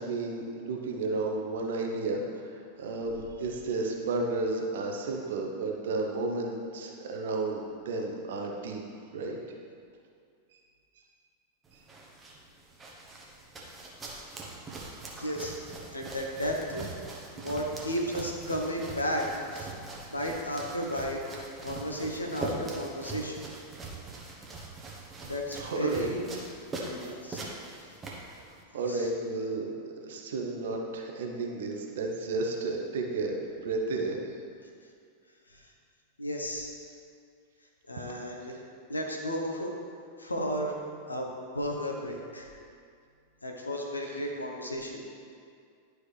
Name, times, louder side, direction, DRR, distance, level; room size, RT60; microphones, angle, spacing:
voice 1, 0.0-8.8 9.1-9.4 11.7-11.8 25.6-26.1 28.1-29.7 30.0-34.2 44.1-44.2, right 3 dB, 60° right, 1 dB, 0.9 m, -32 dB
sound 1, 11.6-28.6, right 3 dB, 20° right, 1.2 m, -42 dB
voice 2, 15.1-15.6 15.9-16.9 17.3-19.3 19.5-19.7 20.1-21.2 21.6-23.4 25.2-26.2 26.8-27.4 27.8-27.9 28.9-29.1 35.5-35.7 36.2-36.7 37.9-38.6 38.9-39.7 40.2-40.7 41.1-42.5 43.4-45.0, equal, 80° left, 1 dB, 0.9 m, -33 dB
11.0 x 4.7 x 3.3 m, 2.3 s
figure-of-eight pair, 90°, 0 cm